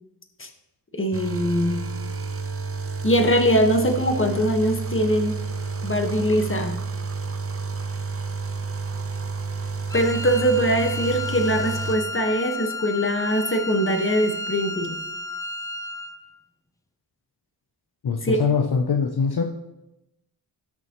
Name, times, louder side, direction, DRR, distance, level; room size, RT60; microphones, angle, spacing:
voice 1, 0.9-1.8 3.0-5.4 5.8-6.8 9.9-15.0 18.2-18.4, equal, 30° left, 4 dB, 1.5 m, -22 dB
sound 1, 1.1-11.9, right 4 dB, 30° right, 0.8 m, -30 dB
Wind instrument woodwind instrument, 9.9-16.2, left 2 dB, 10° left, 0.7 m, -33 dB
voice 2, 18.0-19.4, left 5 dB, 60° left, 3 dB, 0.8 m, -22 dB
18.0 x 6.1 x 3.1 m, 0.94 s
wide cardioid pair, 70°, 43 cm